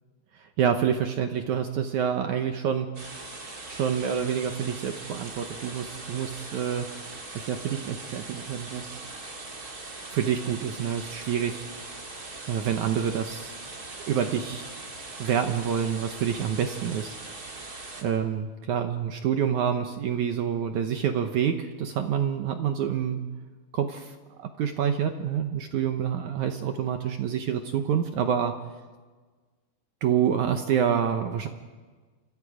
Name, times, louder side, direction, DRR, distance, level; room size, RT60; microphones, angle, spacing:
voice 1, 0.6-2.9 3.7-6.9 7.3-9.1 10.1-12.1 12.5-13.5 14.1-14.7 15.2-17.1 18.0-23.2 23.7-28.5 30.0-31.5, right 8 dB, 70° right, 6 dB, 1.9 m, -27 dB
sound 1, 2.9-18.0, right 3 dB, 25° right, 2.5 m, -41 dB
29.0 x 25.5 x 5.0 m, 1.4 s
omnidirectional pair, 4.5 m